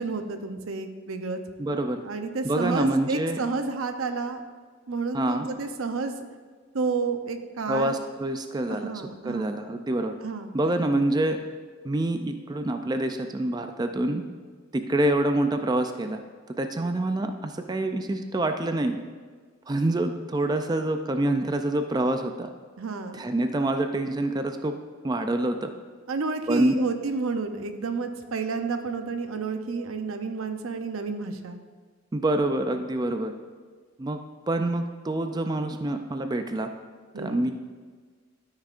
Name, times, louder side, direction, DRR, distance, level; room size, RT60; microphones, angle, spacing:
voice 1, 0.0-1.4 2.0-4.4 4.9-6.2 6.7-8.0 8.7-9.5 10.2-10.5 22.8-23.3 26.1-31.6 37.1-37.4, right 4 dB, 90° right, 7 dB, 0.7 m, -30 dB
voice 2, 1.6-2.0 2.4-3.4 5.1-5.5 7.7-8.9 9.2-10.1 10.5-11.4 11.8-14.2 14.7-16.2 16.6-19.0 19.7-22.5 23.1-24.7 25.0-25.7 26.5-26.7 32.1-33.3 34.0-34.2 34.5-36.7 37.2-37.5, right 1 dB, 20° right, 7 dB, 0.4 m, -26 dB
13.0 x 6.5 x 2.5 m, 1.5 s
head